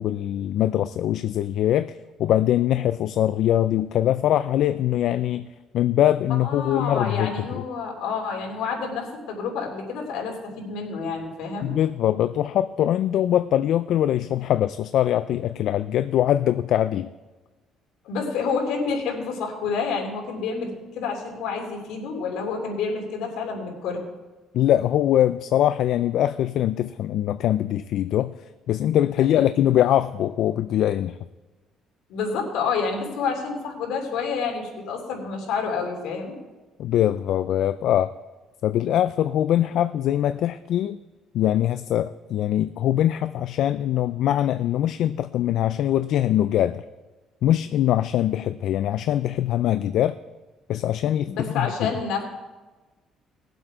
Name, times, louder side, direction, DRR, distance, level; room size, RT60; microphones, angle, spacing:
voice 1, 0.0-5.5 5.7-7.6 11.6-17.1 24.5-28.4 28.7-31.2 36.8-38.1 38.6-41.0 41.3-46.8 47.4-50.2 50.7-51.9, left 11 dB, 60° left, 12 dB, 0.3 m, -22 dB
voice 2, 6.4-11.7 18.0-24.0 29.3-29.4 32.1-36.4 51.2-52.2, left 5 dB, 80° left, 0 dB, 3.1 m, -29 dB
19.5 x 7.8 x 4.6 m, 1.2 s
cardioid pair, 150°, 0 cm